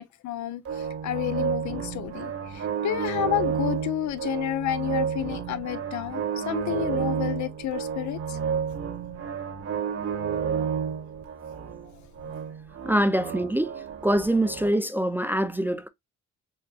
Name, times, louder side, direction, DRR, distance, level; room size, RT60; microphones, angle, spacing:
voice 1, 0.0-8.4, left 13 dB, 70° left, 0.5 m, -30 dB
sound 1, 0.6-14.7, right 7 dB, 50° right, 1.2 m, -31 dB
voice 2, 12.8-13.7 14.0-15.9, right 1 dB, 5° right, 0.3 m, -24 dB
4.4 x 2.6 x 2.3 m
cardioid pair, 90°, 30 cm